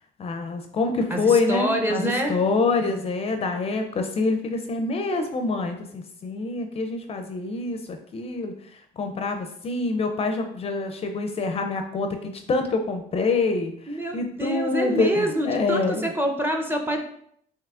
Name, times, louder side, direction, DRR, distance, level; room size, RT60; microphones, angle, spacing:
voice 1, 0.2-8.5 9.0-16.1, left 3 dB, 35° left, 5 dB, 0.4 m, -26 dB
voice 2, 1.1-2.3 13.9-17.0, right 1 dB, 15° right, 3 dB, 0.6 m, -26 dB
5.7 x 2.8 x 2.4 m, 0.67 s
cardioid pair, 110°, 17 cm